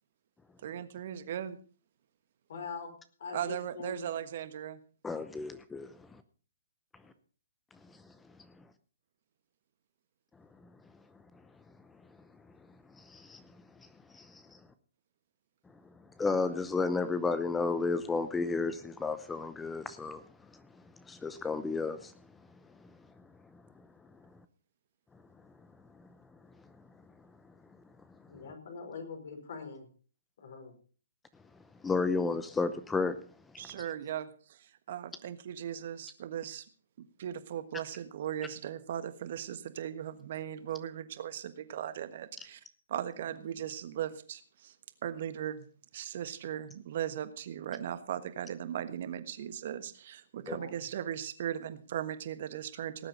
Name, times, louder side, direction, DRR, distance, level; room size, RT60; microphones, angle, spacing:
voice 1, 0.6-1.6 3.3-4.8 33.6-34.2 34.6-36.7 37.0-42.6 42.9-44.8 45.0-45.7 45.9-53.1, right 10 dB, 55° right, 1.4 m, -38 dB
voice 2, 2.5-2.9 3.2-4.1 7.0-7.1 28.3-29.9 30.4-30.7 50.4-50.7, left 5 dB, 60° left, 4.8 m, -43 dB
voice 3, 5.0-5.9 13.0-13.4 14.1-14.6 16.2-20.2 21.1-22.1 31.8-33.2 50.5-50.6, left 4 dB, 10° left, 0.7 m, -32 dB
18.5 x 7.8 x 5.3 m
hypercardioid pair, 140°, 0 cm